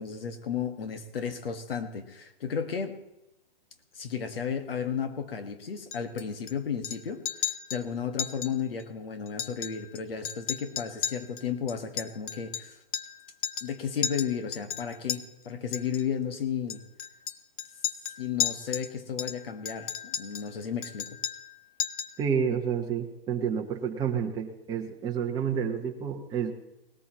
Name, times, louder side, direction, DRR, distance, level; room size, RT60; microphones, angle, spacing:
voice 1, 0.0-3.0 4.0-12.8 13.6-16.8 18.2-21.1, left 7 dB, 70° left, 7 dB, 1.7 m, -33 dB
Chink clink, 5.9-6.5 6.8-7.0 7.2-7.8 8.2-8.5 8.8-8.9 9.3-10.0 10.2-13.2 13.4-13.7 14.0-15.2 15.7-16.0 16.7-18.9 19.2-20.5 20.8-21.5 21.8-22.2, left 9 dB, 40° left, 0.8 m, -34 dB
voice 2, 22.2-26.5, right 7 dB, 15° right, 1 dB, 1.0 m, -29 dB
19.0 x 14.0 x 3.0 m, 0.90 s
hypercardioid pair, 150°, 30 cm